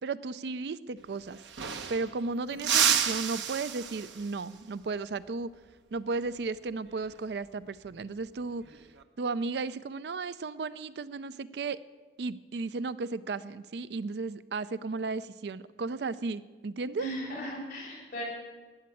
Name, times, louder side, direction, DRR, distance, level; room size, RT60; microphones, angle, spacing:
voice 1, 0.0-1.4 1.9-5.5 5.9-8.8 9.2-11.8 12.2-17.1, right 4 dB, 65° right, 16 dB, 0.4 m, -34 dB
sound 1, 1.0-1.1 1.3-2.2 2.6-4.4 6.9-7.1 8.6-9.0, right 8 dB, 90° right, 0.9 m, -30 dB
voice 2, 2.5-2.9 17.0-18.2, right 1 dB, 45° left, -5 dB, 6.2 m, -38 dB
13.5 x 9.6 x 8.4 m, 1.4 s
head